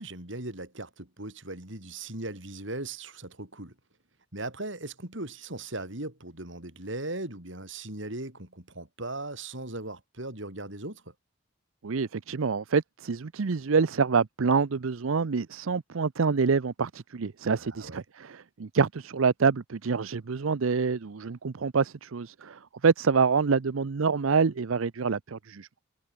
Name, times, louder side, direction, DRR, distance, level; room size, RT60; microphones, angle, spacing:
voice 1, 0.0-3.7 4.3-11.1 17.5-18.0, right 2 dB, 70° right, 4.9 m, -38 dB
voice 2, 11.8-25.7, right 5 dB, 85° right, 0.6 m, -26 dB
head